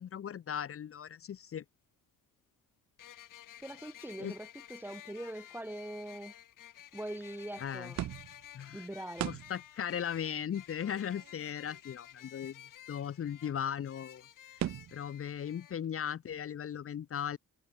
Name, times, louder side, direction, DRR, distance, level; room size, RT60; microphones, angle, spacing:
voice 1, 0.0-1.6 4.2-4.3 7.6-7.9 8.5-8.8 9.2-12.6 12.9-14.7 14.9-17.4, left 9 dB, 45° left, 1.3 m, -38 dB
sound 1, 1.4-1.5 3.0-15.8, left 11 dB, 85° left, 7.7 m, -53 dB
voice 2, 3.6-6.3 6.9-8.0 8.7-9.4, right 1 dB, 5° right, 2.1 m, -42 dB
sound 2, 7.9-8.5 9.2-9.7 10.0-10.1 10.3-10.4 10.8-11.8 13.7-13.8 14.0-14.1 14.6-15.1, right 12 dB, 60° right, 0.9 m, -39 dB
wide cardioid pair, 175°, 31 cm